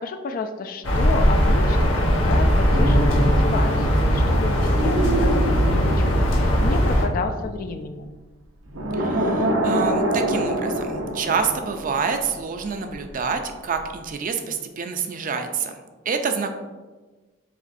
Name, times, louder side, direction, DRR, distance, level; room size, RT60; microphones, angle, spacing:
voice 1, 0.0-8.1, left 4 dB, 45° left, 7 dB, 0.3 m, -31 dB
sound 1, 0.8-7.0, equal, 75° left, 1.0 m, -19 dB
sound 2, 2.7-7.8 8.7-12.6 12.9-13.1, right 1 dB, 85° right, 0.7 m, -26 dB
voice 2, 8.9-15.8 16.1-16.5, right 5 dB, 45° right, 6 dB, 0.4 m, -27 dB
5.0 x 4.0 x 2.6 m, 1.2 s
head